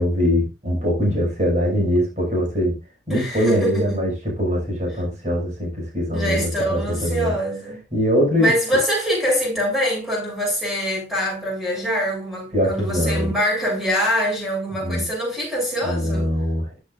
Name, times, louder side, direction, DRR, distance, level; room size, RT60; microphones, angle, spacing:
voice 1, 0.0-2.8 3.1-7.4 7.9-8.5 12.5-13.3 14.8-15.0 15.8-16.8, equal, 40° right, 6.4 m, -22 dB
voice 2, 3.1-4.1 6.1-7.8 8.4-16.3, equal, ahead, 7.4 m, -24 dB
13.5 x 8.1 x 2.6 m
head